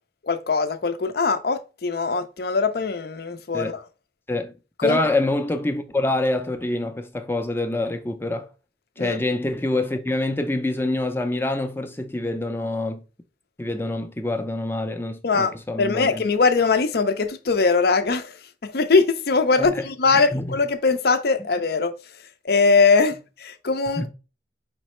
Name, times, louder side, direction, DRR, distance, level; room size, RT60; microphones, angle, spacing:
voice 1, 0.2-3.7 4.8-5.0 9.0-9.2 15.2-18.4 18.6-21.9 22.4-24.1, left 4 dB, 60° left, 0.6 m, -21 dB
voice 2, 4.8-8.5 9.0-13.0 13.6-16.2 19.6-20.6 24.0-24.1, left 2 dB, 15° left, 0.5 m, -26 dB
5.1 x 3.2 x 3.0 m
head